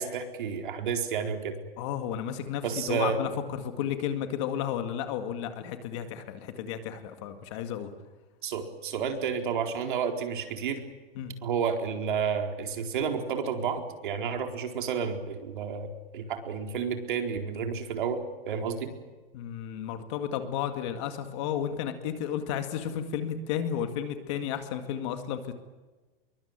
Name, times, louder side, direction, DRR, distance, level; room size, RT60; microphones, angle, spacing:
voice 1, 0.0-1.6 2.6-3.2 8.4-10.8 11.4-18.9, right 6 dB, 60° right, 5 dB, 4.3 m, -31 dB
voice 2, 1.8-3.3 3.6-7.9 11.2-11.3 19.3-25.5, left 9 dB, 30° left, 8 dB, 2.1 m, -33 dB
25.0 x 23.0 x 9.0 m, 1.2 s
supercardioid pair, 175°, 29 cm